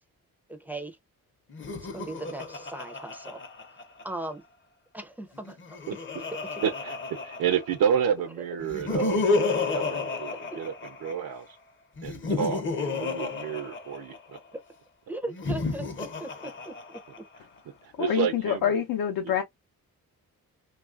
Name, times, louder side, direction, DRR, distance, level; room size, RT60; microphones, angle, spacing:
voice 1, 0.5-1.0 1.9-3.4 4.0-4.4 4.9-5.8 6.4-6.5 10.5-10.6 15.1-17.2, right 2 dB, 5° right, 0.4 m, -38 dB
Laughter, 1.5-4.3 5.4-7.9 8.6-11.3 12.0-14.4 15.3-17.4, left 3 dB, 35° left, 0.7 m, -31 dB
voice 2, 6.6-11.6 12.0-14.4 17.7-18.7, right 8 dB, 80° right, 0.6 m, -30 dB
voice 3, 18.0-19.4, left 8 dB, 75° left, 0.6 m, -26 dB
3.1 x 2.4 x 2.3 m
wide cardioid pair, 140°, 35 cm